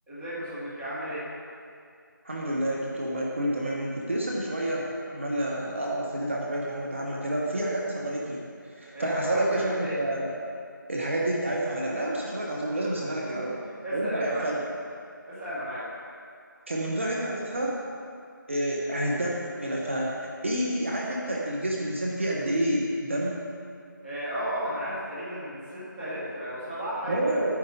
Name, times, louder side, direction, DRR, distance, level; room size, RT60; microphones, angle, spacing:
voice 1, 0.1-1.2 8.9-10.0 13.3-13.4 13.8-14.6 15.3-15.8 24.0-27.4, equal, ahead, -19 dB, 1.4 m, -34 dB
voice 2, 2.2-10.3 10.9-13.6 13.9-14.5 16.7-17.8 18.5-23.4 27.1-27.6, right 1 dB, 35° right, -3 dB, 1.1 m, -29 dB
11.0 x 9.5 x 3.7 m, 2.4 s
figure-of-eight pair, 170°, 11 cm